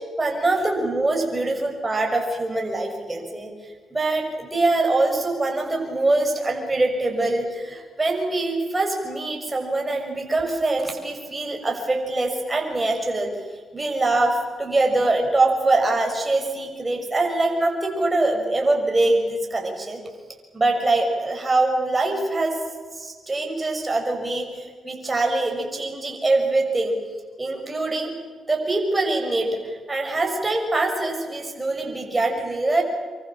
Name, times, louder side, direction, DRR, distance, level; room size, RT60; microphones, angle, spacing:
voice 1, 0.2-3.5 3.9-13.3 13.7-20.0 20.5-22.5 23.0-26.9 27.4-28.1 28.5-32.8, right 2 dB, 25° right, 2 dB, 6.5 m, -23 dB
25.5 x 24.5 x 7.6 m, 1.5 s
cardioid pair, 65°, 0 cm